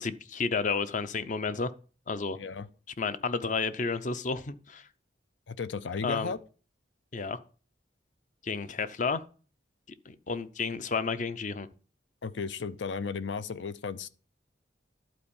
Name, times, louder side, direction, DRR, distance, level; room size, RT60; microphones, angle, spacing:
voice 1, 0.0-1.7 2.1-2.4 3.0-4.9 6.0-6.3 7.1-7.4 8.4-9.2 10.1-11.7, left 4 dB, 45° left, 0.6 m, -31 dB
voice 2, 2.4-2.7 5.5-6.4 12.2-14.1, left 5 dB, 85° left, 0.6 m, -34 dB
11.5 x 4.4 x 7.0 m
head